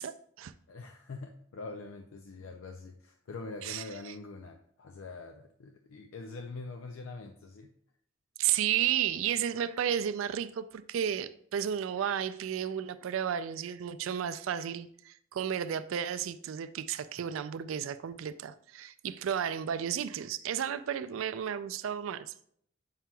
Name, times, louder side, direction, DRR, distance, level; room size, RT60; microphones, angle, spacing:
voice 1, 0.0-0.5 3.6-4.1 8.4-22.5, right 9 dB, 75° right, 13 dB, 0.3 m, -33 dB
voice 2, 0.7-7.7, left 3 dB, 75° left, 4 dB, 0.5 m, -44 dB
7.4 x 5.6 x 2.3 m, 0.65 s
head